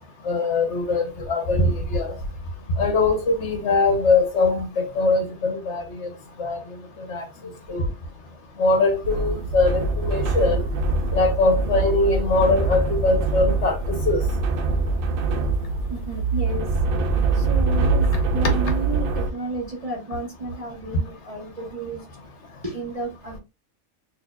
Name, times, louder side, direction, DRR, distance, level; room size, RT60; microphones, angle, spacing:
voice 1, 0.2-2.1 2.8-6.1 6.4-6.6 7.0-7.2 7.7-7.9 8.6-10.6 11.1-14.2 18.4-18.5, left 3 dB, 60° left, 1.0 m, -22 dB
sound 1, 9.0-19.3, right 3 dB, 70° right, 0.5 m, -23 dB
voice 2, 15.9-16.7 17.3-22.0 22.6-23.4, right 2 dB, 35° right, 0.7 m, -32 dB
4.3 x 2.7 x 2.3 m
omnidirectional pair, 1.5 m